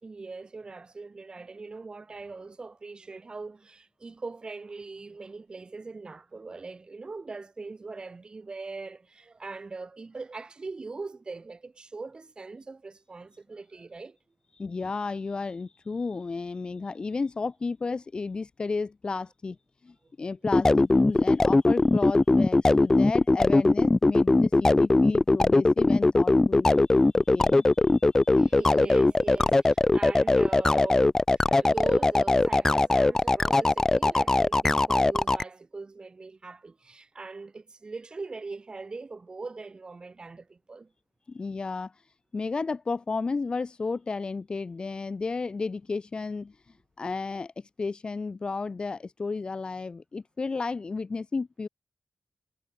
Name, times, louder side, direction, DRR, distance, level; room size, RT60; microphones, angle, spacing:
voice 1, 0.0-14.2 20.0-20.1 28.3-40.9, right 3 dB, 40° right, 3.2 m, -41 dB
voice 2, 14.5-19.6 19.8-28.6 41.3-42.0 42.3-46.6 47.0-51.7, left 4 dB, 40° left, 0.7 m, -33 dB
sound 1, 20.4-35.4, left 2 dB, 25° left, 0.3 m, -20 dB
wide cardioid pair, 135°, 2 cm